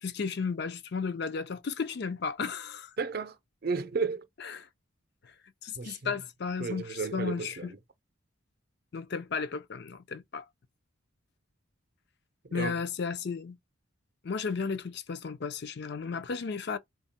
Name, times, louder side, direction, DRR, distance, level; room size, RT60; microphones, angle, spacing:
voice 1, 0.0-2.9 4.4-4.7 5.6-7.7 8.9-10.4 12.5-13.6 14.2-16.8, left 5 dB, 55° left, 0.5 m, -34 dB
voice 2, 3.0-3.4 3.6-4.2 5.7-6.1 6.6-7.8 12.4-12.8, right 4 dB, 50° right, 0.6 m, -33 dB
3.6 x 2.3 x 4.1 m
head